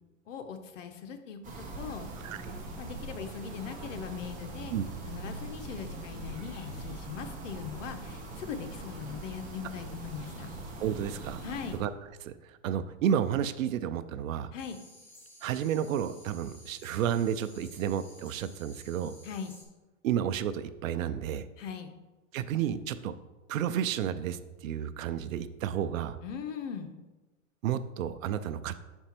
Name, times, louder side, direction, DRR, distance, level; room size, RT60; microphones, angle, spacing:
voice 1, 0.3-1.4 1.8-2.1 2.8-4.7 5.1-10.5 11.4-11.8 14.5-14.8 19.2-19.5 21.6-21.9 26.2-27.0, left 7 dB, 70° left, 7 dB, 0.9 m, -40 dB
sound 1, 1.4-11.8, right 2 dB, 20° right, 1.1 m, -42 dB
voice 2, 10.8-11.4 11.8-11.9 12.2-12.3 12.6-14.5 15.4-19.1 20.0-21.5 22.3-23.1 23.5-26.2 27.6-28.8, right 9 dB, 80° right, 13 dB, 0.6 m, -31 dB
sound 2, 14.6-19.6, left 1 dB, 5° left, 1.0 m, -54 dB
5.9 x 4.5 x 4.3 m, 1.1 s
hypercardioid pair, 145°, 39 cm